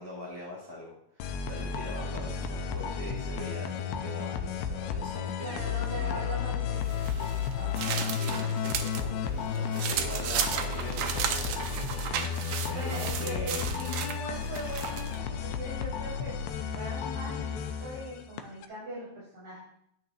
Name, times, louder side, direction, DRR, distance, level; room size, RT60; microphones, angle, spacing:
voice 1, 0.0-6.3 7.5-12.0 12.7-13.7, equal, 10° left, -7 dB, 1.1 m, -42 dB
sound 1, 1.2-18.7, left 7 dB, 80° left, 2.5 m, -33 dB
voice 2, 5.4-7.3 12.5-19.6, equal, 40° right, -11 dB, 5.9 m, -41 dB
sound 2, 6.9-9.1 9.4-15.2, right 8 dB, 75° right, 2.3 m, -34 dB
12.5 x 8.8 x 2.9 m, 0.74 s
omnidirectional pair, 5.0 m